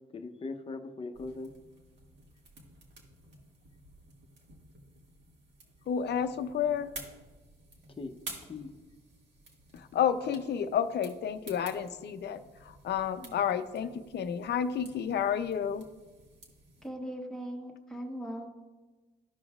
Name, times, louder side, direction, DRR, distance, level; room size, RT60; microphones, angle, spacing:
voice 1, 0.1-1.5 8.0-8.2 8.5-8.7 13.2-13.4, left 3 dB, 25° left, 5 dB, 0.8 m, -40 dB
sound 1, 1.1-16.9, right 2 dB, 60° right, 1.9 m, -52 dB
voice 2, 5.9-6.9 9.7-15.9, left 8 dB, 60° left, 11 dB, 0.6 m, -31 dB
voice 3, 16.8-18.5, equal, 5° left, 0 dB, 1.3 m, -39 dB
14.0 x 5.2 x 2.4 m, 1.2 s
cardioid pair, 90°, 20 cm